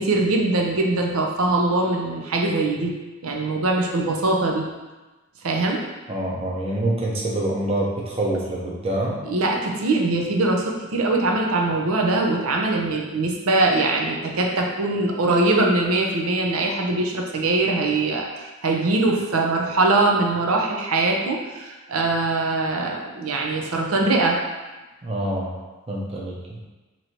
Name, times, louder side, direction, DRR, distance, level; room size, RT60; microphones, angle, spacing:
voice 1, 0.0-2.9 3.2-4.7 5.4-5.8 9.2-24.4, right 2 dB, 85° right, 0 dB, 0.6 m, -22 dB
voice 2, 6.1-9.2 25.0-25.5 25.9-26.6, right 1 dB, 30° right, -3 dB, 0.7 m, -26 dB
3.0 x 2.6 x 4.3 m, 1.2 s
head